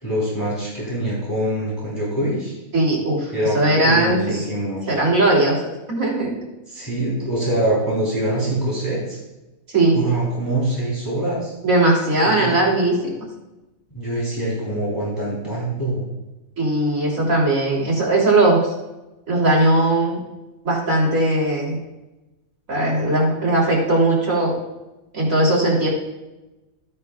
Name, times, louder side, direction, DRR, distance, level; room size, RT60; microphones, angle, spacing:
voice 1, 0.0-2.6 3.3-4.9 6.7-9.2 9.9-11.5 12.3-12.6 13.9-16.0, right 1 dB, 15° left, -7 dB, 3.6 m, -24 dB
voice 2, 2.7-4.4 4.9-5.6 5.9-6.3 9.7-10.0 11.6-13.0 16.6-18.7 19.3-20.2 20.6-21.8 22.7-24.5 25.1-25.9, right 2 dB, 70° right, -5 dB, 3.6 m, -18 dB
14.5 x 9.5 x 2.4 m, 1.0 s
omnidirectional pair, 1.5 m